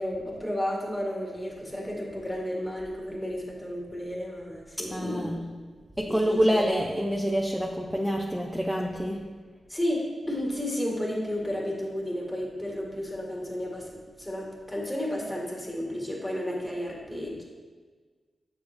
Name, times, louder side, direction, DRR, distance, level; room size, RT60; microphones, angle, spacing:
voice 1, 0.0-5.4 6.1-6.7 9.7-17.4, left 1 dB, 15° left, -3 dB, 1.9 m, -32 dB
voice 2, 4.9-5.5 6.0-9.3, equal, 5° right, -1 dB, 0.6 m, -27 dB
7.6 x 5.7 x 2.6 m, 1.4 s
cardioid pair, 60°, 0 cm